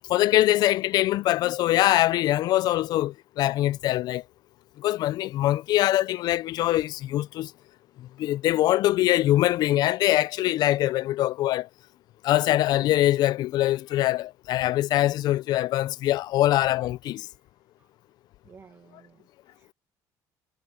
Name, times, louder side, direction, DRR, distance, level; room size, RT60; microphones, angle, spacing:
voice 1, 0.1-4.2 4.8-7.5 8.2-11.7 12.2-17.3, left 15 dB, 60° left, 0.4 m, -23 dB
voice 2, 18.4-19.7, right 6 dB, 35° right, 1.6 m, -54 dB
cardioid pair, 125°, 8 cm